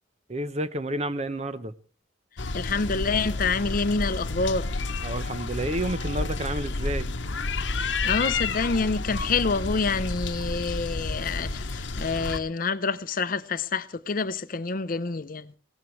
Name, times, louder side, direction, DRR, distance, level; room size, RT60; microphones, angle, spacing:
voice 1, 0.3-1.7 5.0-7.1, right 1 dB, 35° right, 0.8 m, -30 dB
sound 1, 2.4-12.4, left 3 dB, 75° left, 0.9 m, -30 dB
voice 2, 2.5-4.7 8.0-15.5, left 4 dB, 50° left, 0.6 m, -27 dB
21.0 x 17.0 x 3.2 m
head